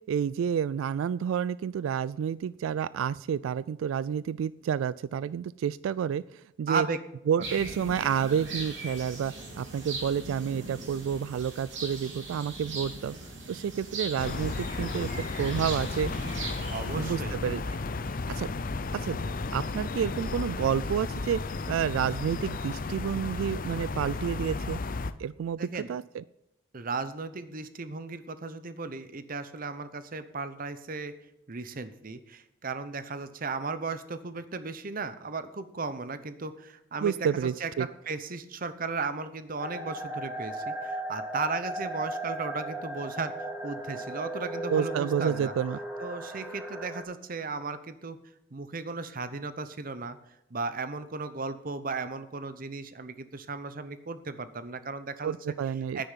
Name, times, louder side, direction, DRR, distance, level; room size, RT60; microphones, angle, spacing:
voice 1, 0.1-6.9 7.3-13.1 13.5-15.1 15.4-16.1 16.9-17.6 18.3-18.5 18.9-19.2 19.5-21.4 21.7-24.8 25.2-26.2 37.0-37.9 44.7-45.8 55.2-56.0, right 8 dB, 90° right, 18 dB, 0.3 m, -29 dB
voice 2, 6.7-7.0 16.7-17.4 25.6-25.9 26.7-31.2 31.5-37.2 37.4-43.3 43.6-45.5 46.0-48.2 48.5-50.2 50.5-55.5 55.9-56.1, right 4 dB, 45° right, 12 dB, 0.8 m, -35 dB
sound 1, 7.4-17.1, right 3 dB, 65° right, 3.5 m, -40 dB
sound 2, 14.2-25.1, left 3 dB, 45° left, 0.6 m, -33 dB
sound 3, 39.6-47.0, right 1 dB, 15° right, 2.1 m, -36 dB
10.0 x 9.5 x 5.6 m, 0.85 s
head